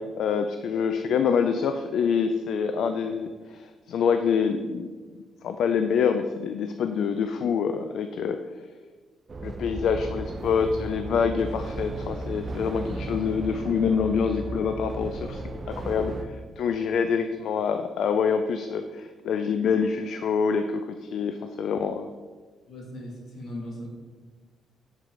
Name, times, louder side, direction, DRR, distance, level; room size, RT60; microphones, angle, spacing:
voice 1, 0.0-4.9 5.4-8.4 9.4-15.4 15.7-22.1, left 6 dB, 70° left, 8 dB, 0.3 m, -26 dB
sound 1, 9.3-16.3, right 2 dB, 35° right, 0.6 m, -35 dB
voice 2, 22.7-23.9, left 1 dB, 55° left, -2 dB, 2.0 m, -38 dB
7.3 x 4.7 x 3.8 m, 1.4 s
cardioid pair, 90°, 0 cm